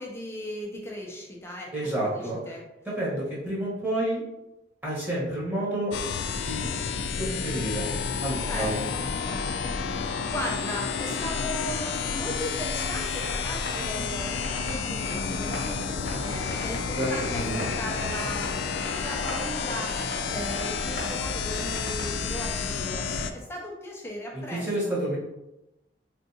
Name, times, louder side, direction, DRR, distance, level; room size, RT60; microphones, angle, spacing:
voice 1, 0.0-2.6 8.4-23.0 23.3-24.9, equal, 15° left, -1 dB, 0.5 m, -37 dB
voice 2, 1.7-2.4 3.0-4.2 4.8-5.9 6.5-6.7 7.2-7.9 8.2-8.9 16.9-17.7 24.3-25.2, right 1 dB, 10° right, -8 dB, 1.0 m, -29 dB
sound 1, 5.9-23.3, left 5 dB, 90° left, 0.3 m, -30 dB
sound 2, 12.8-22.5, left 1 dB, 55° left, 0.9 m, -40 dB
3.5 x 2.4 x 2.7 m, 0.94 s
head